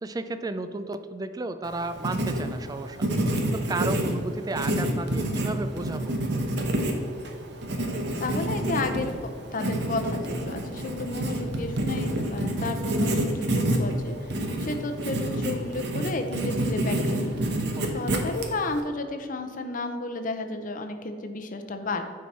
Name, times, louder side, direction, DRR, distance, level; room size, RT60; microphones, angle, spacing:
voice 1, 0.0-3.0 3.5-6.2 17.8-18.0, right 2 dB, 20° right, 10 dB, 0.3 m, -33 dB
Writing, 1.6-18.8, right 1 dB, 60° right, 0.9 m, -28 dB
voice 2, 8.2-9.1 9.5-17.4 17.9-22.0, left 2 dB, 45° left, 6 dB, 0.6 m, -32 dB
9.4 x 4.6 x 4.2 m, 2.1 s
head